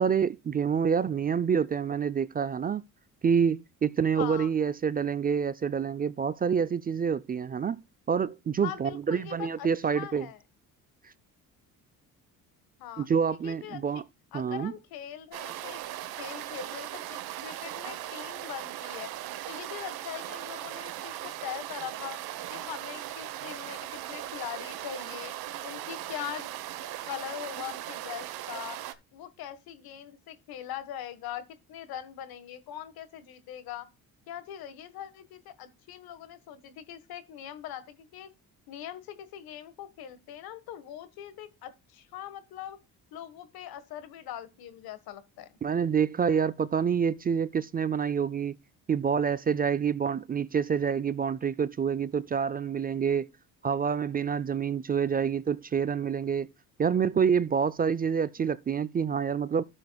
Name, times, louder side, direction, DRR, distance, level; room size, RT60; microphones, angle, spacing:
voice 1, 0.0-2.8 3.2-7.8 8.1-10.3 13.0-14.0 14.3-14.7 45.6-48.6 48.9-53.3 53.6-56.5 56.8-59.6, right 7 dB, 25° right, 0.4 m, -27 dB
voice 2, 4.1-4.5 8.6-9.7 9.9-10.4 12.8-13.1 13.4-14.0 14.3-15.9 16.2-19.1 19.5-22.2 22.5-25.3 25.6-26.5 27.1-28.8 29.1-33.9 34.3-38.3 38.7-42.8 43.1-45.6, left 10 dB, 80° left, 1.5 m, -41 dB
sound 1, 15.3-28.9, right 13 dB, 80° right, 1.1 m, -38 dB
13.0 x 7.0 x 2.3 m
cardioid pair, 95°, 36 cm